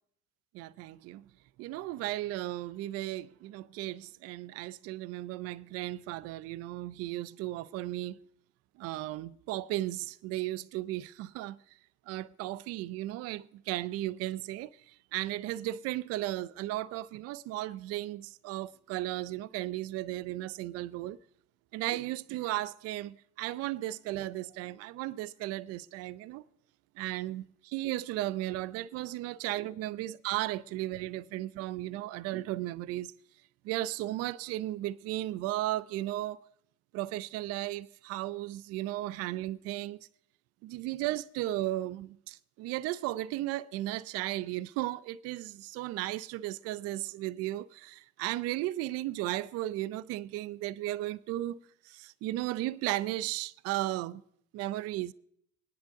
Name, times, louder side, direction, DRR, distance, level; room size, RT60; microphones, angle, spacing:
voice 1, 0.5-1.2 1.6-8.2 8.8-11.6 12.1-14.7 15.1-21.2 21.7-26.4 27.0-33.1 33.6-36.4 36.9-40.0 40.6-51.6 51.9-54.2 54.5-55.1, right 15 dB, 35° right, 0.4 m, -35 dB
26.0 x 10.5 x 3.8 m
figure-of-eight pair, 60°, 44 cm